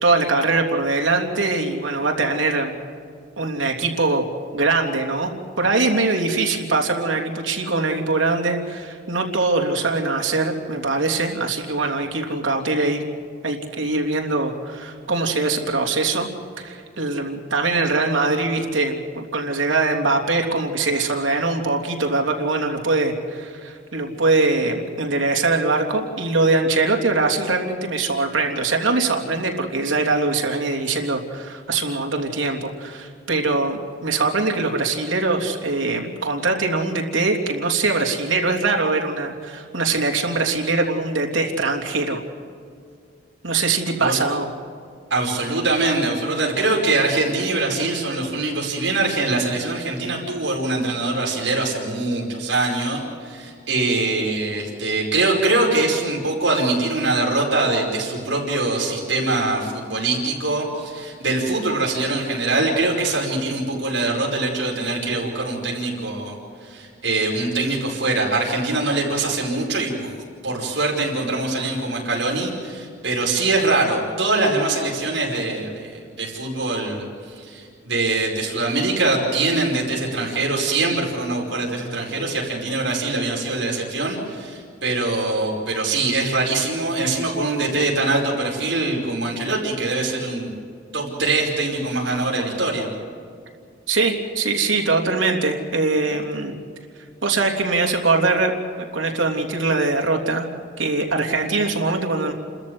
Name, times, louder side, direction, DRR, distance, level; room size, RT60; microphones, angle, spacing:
voice 1, 0.0-2.7 3.4-4.2 4.5-5.3 5.6-13.0 13.4-16.3 16.6-42.2 43.4-44.5 93.9-96.6 97.2-98.5 98.8-100.5 100.8-102.3, right 3 dB, 85° right, 1 dB, 3.2 m, -22 dB
voice 2, 45.1-70.2 70.4-90.6 90.9-92.9, right 2 dB, 70° right, -2 dB, 5.1 m, -23 dB
30.0 x 14.0 x 8.1 m, 2.3 s
head